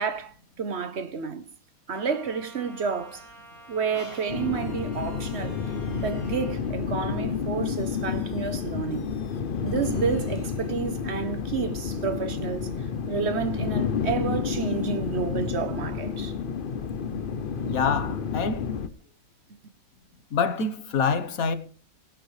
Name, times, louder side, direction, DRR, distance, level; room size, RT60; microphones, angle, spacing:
voice 1, 0.0-1.5 1.9-3.3 3.7-5.6 6.0-9.2 9.6-16.4, right 6 dB, 55° right, 1.2 m, -30 dB
Trumpet, 1.9-6.6, right 1 dB, 80° right, 3.1 m, -49 dB
sound 1, 2.8-8.2, left 2 dB, 20° left, 3.0 m, -51 dB
sound 2, 4.3-18.9, left 6 dB, 45° left, 0.8 m, -30 dB
voice 2, 17.7-18.7 20.3-21.6, left 5 dB, 80° left, 1.6 m, -26 dB
18.0 x 10.5 x 3.3 m
omnidirectional pair, 1.5 m